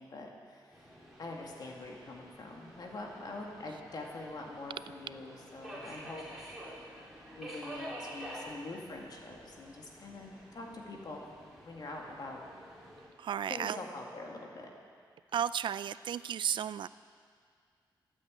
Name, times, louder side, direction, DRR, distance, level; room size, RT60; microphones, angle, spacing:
voice 1, 0.0-6.2 6.6-6.8 7.3-11.2 11.6-12.4 13.5-14.7, left 2 dB, 50° left, 0 dB, 2.2 m, -44 dB
Subway metro underground, 0.7-13.1, equal, 5° right, 4.0 m, -49 dB
voice 2, 13.2-13.8 15.3-16.9, right 9 dB, 70° right, 16 dB, 0.4 m, -33 dB
13.0 x 9.0 x 8.0 m, 2.1 s
cardioid pair, 100°, 8 cm